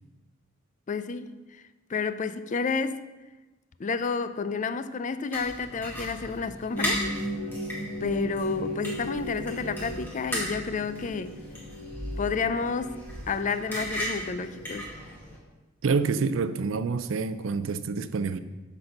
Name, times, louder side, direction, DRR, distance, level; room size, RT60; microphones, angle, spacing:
voice 1, 0.9-1.6 1.9-3.0 3.8-7.0 8.0-11.4 12.2-14.9, left 5 dB, 40° left, 12 dB, 0.4 m, -30 dB
sound 1, 5.3-15.4, equal, 10° left, 2.2 m, -37 dB
sound 2, 6.7-14.8, equal, 75° left, 1.7 m, -37 dB
voice 2, 15.8-18.4, right 4 dB, 80° right, 12 dB, 0.4 m, -27 dB
10.0 x 4.1 x 6.6 m, 1.2 s
head